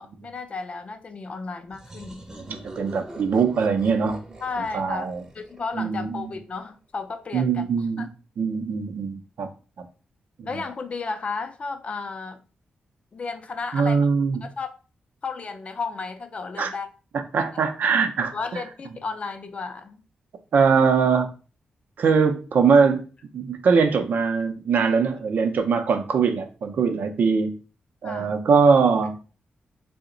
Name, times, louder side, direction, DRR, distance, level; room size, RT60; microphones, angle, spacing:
voice 1, 0.0-2.2 4.4-5.1 5.3-7.6 8.0-8.1 10.4-12.4 13.1-14.1 14.4-14.7 15.2-16.9 18.3-20.0 28.0-28.3, left 4 dB, 40° left, 0.4 m, -33 dB
sound 1, 1.7-6.3, right 1 dB, 20° right, 0.6 m, -43 dB
voice 2, 2.5-4.2 4.6-5.2 5.7-6.3 7.3-8.1 8.4-9.5 9.8-9.9 10.4-10.6 13.7-14.5 16.6-16.7 17.1-18.6 20.5-21.3 22.0-23.0 23.3-27.5 28.0-29.1, right 5 dB, 70° right, 0.5 m, -22 dB
2.9 x 2.1 x 3.7 m
cardioid pair, 90°, 3 cm